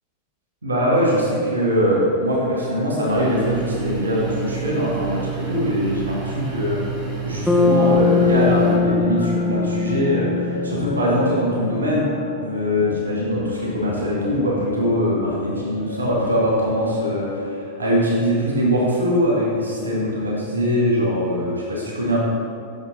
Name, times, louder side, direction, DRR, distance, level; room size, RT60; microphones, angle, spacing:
voice 1, 0.6-6.8 7.2-12.1 12.4-22.2, equal, 75° right, -4 dB, 1.3 m, -22 dB
sound 1, 3.1-8.8, right 7 dB, 35° right, 1.5 m, -30 dB
Bass guitar, 7.5-11.8, left 5 dB, ahead, 0.7 m, -21 dB
sound 2, 8.2-17.6, left 3 dB, 75° left, 0.4 m, -34 dB
6.5 x 6.2 x 3.7 m, 2.4 s
figure-of-eight pair, 90°, 0 cm